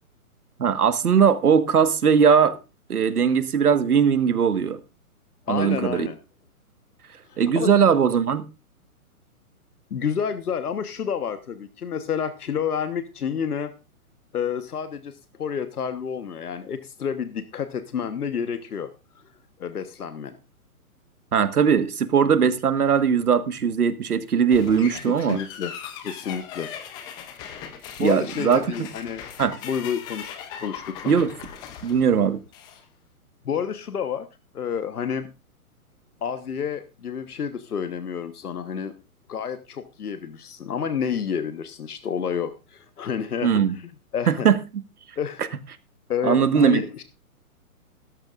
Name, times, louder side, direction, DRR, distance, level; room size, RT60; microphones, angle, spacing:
voice 1, 0.6-2.6 2.9-4.8 5.5-6.1 7.4-8.5 21.3-25.4 28.0-28.9 29.4-29.6 31.0-31.3 31.8-32.4 43.4-43.7 44.3-44.6 46.2-47.0, right 7 dB, 85° right, 1.7 m, -20 dB
voice 2, 5.5-6.2 7.3-7.7 9.9-13.7 14.3-18.9 19.6-20.4 25.0-25.7 26.0-26.7 27.8-29.2 29.6-31.1 33.4-34.3 34.5-35.3 36.2-38.9 39.3-43.5 44.1-44.5 45.2-45.4 46.1-47.0, left 7 dB, 85° left, 1.3 m, -29 dB
sound 1, 24.5-32.8, left 8 dB, 10° left, 0.6 m, -39 dB
16.0 x 13.0 x 2.5 m
hypercardioid pair, 145°, 44 cm